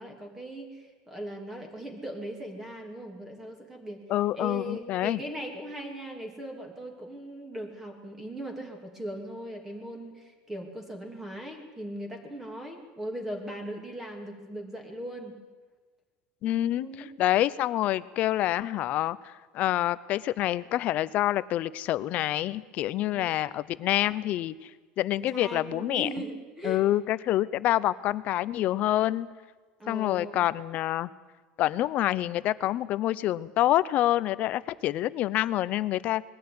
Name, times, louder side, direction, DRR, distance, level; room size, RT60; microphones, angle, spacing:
voice 1, 0.0-4.0 4.3-15.3 16.8-17.1 23.1-23.3 25.2-26.8 29.8-30.5, equal, 10° right, 3 dB, 2.8 m, -39 dB
voice 2, 4.1-5.2 16.4-16.9 17.2-24.7 25.0-26.1 26.6-29.3 29.9-31.1 31.6-36.2, left 14 dB, 40° left, 17 dB, 0.7 m, -27 dB
21.5 x 15.0 x 9.6 m, 1.4 s
cardioid pair, 160°, 4 cm